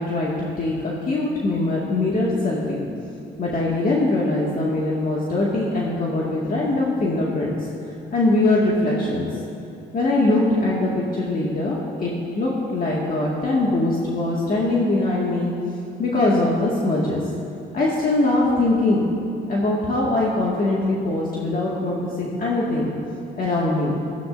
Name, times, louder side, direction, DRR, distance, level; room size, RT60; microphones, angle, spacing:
voice 1, 0.0-2.8 3.4-7.7 8.1-9.3 9.9-15.5 16.0-17.2 17.7-19.1 19.5-22.9 23.3-23.9, left 2 dB, 45° left, -5 dB, 2.0 m, -22 dB
18.0 x 14.5 x 2.7 m, 2.6 s
cardioid pair, 90°, 20 cm